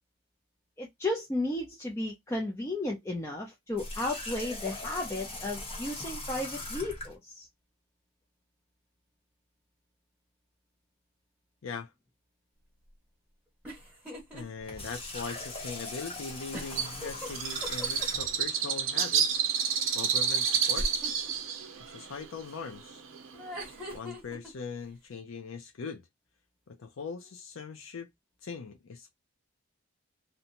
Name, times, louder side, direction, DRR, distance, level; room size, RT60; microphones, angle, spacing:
voice 1, 0.8-7.5, left 2 dB, 15° left, 0.4 m, -34 dB
Water tap faucet, 3.7-7.1 14.5-18.4, left 2 dB, 30° left, 0.9 m, -40 dB
sound 1, 13.6-14.4 14.8-14.9 16.5-18.3 20.8-21.3 23.3-24.5, left 1 dB, 5° right, 1.2 m, -39 dB
voice 2, 14.3-19.4 19.9-20.9 21.9-23.0 23.9-26.0 26.7-28.1 28.4-29.1, left 4 dB, 75° left, 0.5 m, -40 dB
Bird, 16.7-24.0, right 7 dB, 75° right, 0.6 m, -30 dB
2.6 x 2.1 x 2.8 m
head